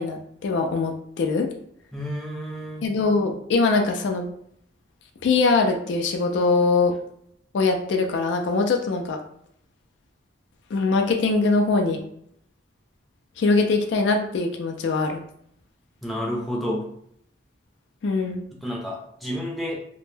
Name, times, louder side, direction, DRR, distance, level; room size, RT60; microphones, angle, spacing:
voice 1, 0.0-1.5 2.8-4.3 5.2-6.9 7.5-9.2 10.7-12.1 13.4-15.2 18.0-18.4, left 3 dB, 65° left, 4 dB, 0.3 m, -22 dB
voice 2, 1.9-2.9 16.0-16.8 18.5-19.8, equal, ahead, -4 dB, 0.5 m, -30 dB
2.1 x 2.1 x 3.1 m, 0.69 s
head